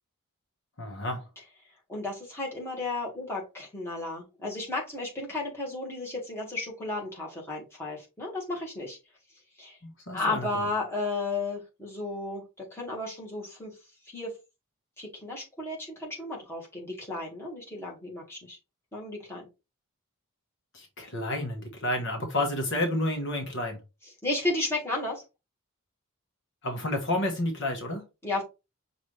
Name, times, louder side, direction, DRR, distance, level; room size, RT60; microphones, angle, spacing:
voice 1, 0.8-1.2 9.8-10.5 20.7-23.8 26.6-28.0, left 1 dB, 55° left, 1.1 m, -30 dB
voice 2, 1.9-9.0 9.6-9.8 10.1-12.4 12.7-13.7 14.1-14.3 15.0-18.6 18.9-19.4 24.2-25.2 28.2-28.4, left 2 dB, 10° left, 1.6 m, -33 dB
5.7 x 2.6 x 3.2 m
head